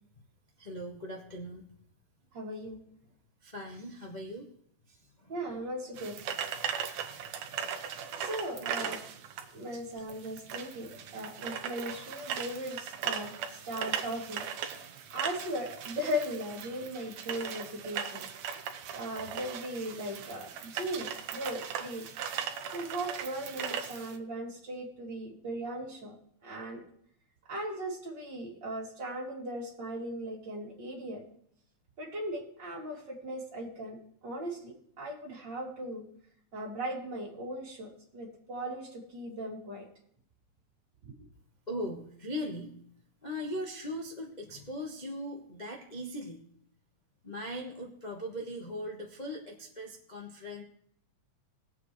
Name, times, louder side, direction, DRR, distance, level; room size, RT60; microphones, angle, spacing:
voice 1, 0.6-1.7 3.4-4.5 4.9-5.3 6.5-6.6 8.6-8.9 9.7-9.8 41.7-42.7 43.2-46.4 47.2-50.6, equal, 65° left, -1 dB, 0.4 m, -39 dB
voice 2, 2.3-2.8 5.3-6.2 8.2-9.0 9.5-14.4 15.1-18.2 18.9-22.1 22.7-26.1 26.4-26.8 27.5-31.2 32.0-34.0 34.2-36.1 36.5-39.9, equal, 35° right, -3 dB, 3.3 m, -38 dB
sound 1, 5.9-24.2, right 8 dB, 70° right, 2.1 m, -38 dB
20.0 x 8.3 x 3.2 m, 0.68 s
omnidirectional pair, 3.4 m